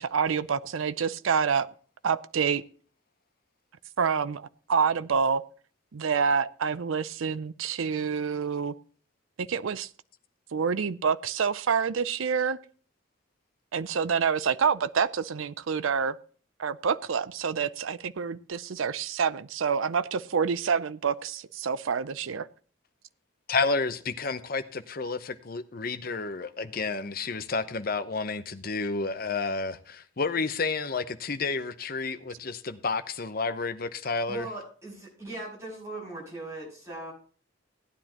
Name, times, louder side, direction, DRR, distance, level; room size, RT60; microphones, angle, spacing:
voice 1, 0.0-1.7 2.0-2.6 4.0-5.4 5.9-8.7 9.4-9.9 10.5-12.6 13.7-16.2 16.6-22.5, right 6 dB, 75° right, 0.5 m, -27 dB
voice 2, 23.5-34.5, left 4 dB, 45° left, 0.7 m, -30 dB
voice 3, 34.3-37.1, right 2 dB, 15° right, 6.5 m, -39 dB
16.5 x 9.8 x 2.9 m
head